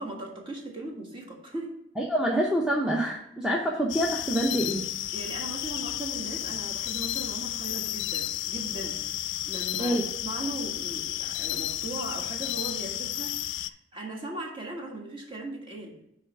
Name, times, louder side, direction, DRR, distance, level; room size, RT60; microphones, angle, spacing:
voice 1, 0.0-1.8 5.1-16.0, right 2 dB, 25° right, -1 dB, 1.6 m, -38 dB
voice 2, 2.0-4.9 9.8-10.0, right 1 dB, 5° right, -2 dB, 0.7 m, -26 dB
sound 1, 3.9-13.7, left 13 dB, 70° left, 0.4 m, -32 dB
9.3 x 3.3 x 5.9 m, 0.78 s
head